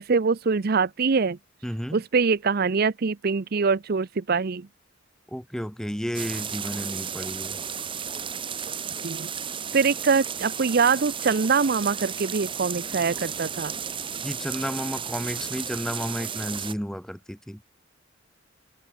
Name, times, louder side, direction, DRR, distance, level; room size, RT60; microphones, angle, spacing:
voice 1, 0.0-1.4 1.9-4.7 9.0-9.3 9.7-13.7, right 5 dB, 50° right, 0.6 m, -23 dB
voice 2, 1.6-2.0 5.3-7.6 14.2-17.6, equal, 5° left, 2.7 m, -32 dB
sound 1, 6.1-16.7, right 7 dB, 25° right, 1.4 m, -33 dB
head